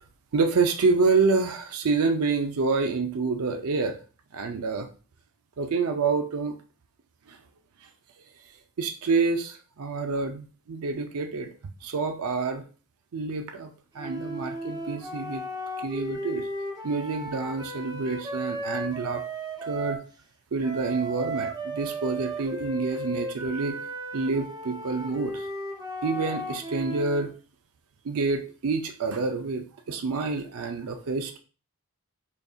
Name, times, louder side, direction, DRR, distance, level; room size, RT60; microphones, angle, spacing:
voice 1, 0.3-4.0 4.3-4.9 5.6-6.5 7.3-7.4 8.8-11.5 11.8-12.6 13.1-15.4 15.8-16.5 16.8-19.2 19.6-20.0 20.5-23.8 24.1-25.4 26.0-27.3 28.0-31.4, right 4 dB, 70° right, 5 dB, 0.5 m, -27 dB
sound 1, 14.0-20.1 20.6-27.3, right 1 dB, 20° right, 0.6 m, -35 dB
5.1 x 2.6 x 2.3 m, 0.37 s
head